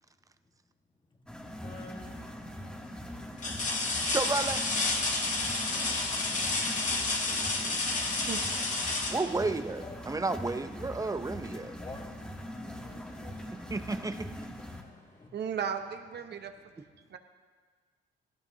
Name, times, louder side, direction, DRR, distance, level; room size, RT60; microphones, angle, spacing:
sound 1, 1.3-14.8, equal, 5° left, 1.3 m, -42 dB
sound 2, 1.6-2.1 2.7-2.8 3.4-10.1 11.8-12.0 12.4-13.5 14.8-14.9, left 3 dB, 40° left, 2.0 m, -31 dB
voice 1, 4.0-4.6 9.1-11.7 13.7-14.3, right 3 dB, 15° right, 11 dB, 0.6 m, -32 dB
voice 2, 6.6-7.1 8.0-8.5 15.3-16.5 17.1-17.2, right 7 dB, 60° right, 7 dB, 0.9 m, -37 dB
voice 3, 11.6-12.6 12.9-13.3 15.2-15.3, left 2 dB, 25° left, 3 dB, 1.5 m, -51 dB
17.0 x 14.5 x 2.8 m, 1.5 s
cardioid pair, 90°, 20 cm